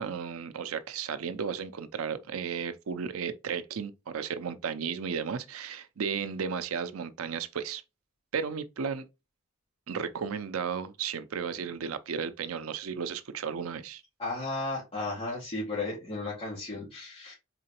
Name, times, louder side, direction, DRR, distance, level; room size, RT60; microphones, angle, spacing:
voice 1, 0.0-7.8 8.3-9.0 9.9-14.0, right 6 dB, 85° right, 0.5 m, -34 dB
voice 2, 14.2-17.3, left 2 dB, 25° left, 1.7 m, -34 dB
4.1 x 3.8 x 2.9 m
head